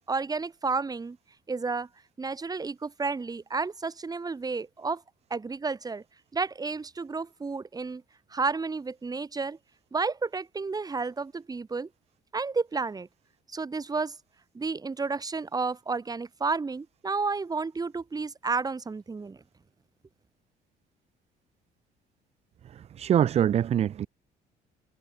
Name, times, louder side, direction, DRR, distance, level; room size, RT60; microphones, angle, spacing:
voice 1, 0.1-1.2 1.5-1.9 2.2-5.0 5.3-6.0 6.3-8.0 8.3-9.6 9.9-11.9 12.3-13.1 13.5-14.2 14.5-19.4, right 4 dB, 20° right, 2.7 m, -31 dB
voice 2, 23.0-24.1, right 10 dB, 40° right, 0.5 m, -23 dB
cardioid pair, 110°, 17 cm